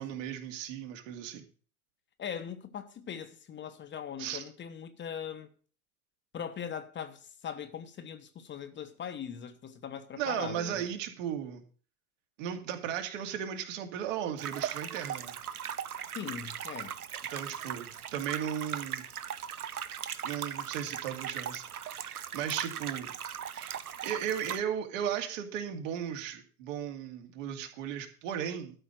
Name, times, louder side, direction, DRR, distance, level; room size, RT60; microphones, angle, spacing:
voice 1, 0.0-1.4 4.2-4.4 10.2-11.6 12.4-15.4 17.3-19.0 20.2-23.1 23.5-28.7, right 9 dB, 60° right, 2.6 m, -36 dB
voice 2, 2.2-5.5 6.3-10.8 16.1-17.0, left 8 dB, 25° left, 1.2 m, -40 dB
sound 1, 14.4-24.6, right 9 dB, 85° right, 1.0 m, -38 dB
13.0 x 5.6 x 7.7 m
hypercardioid pair, 90°, 43 cm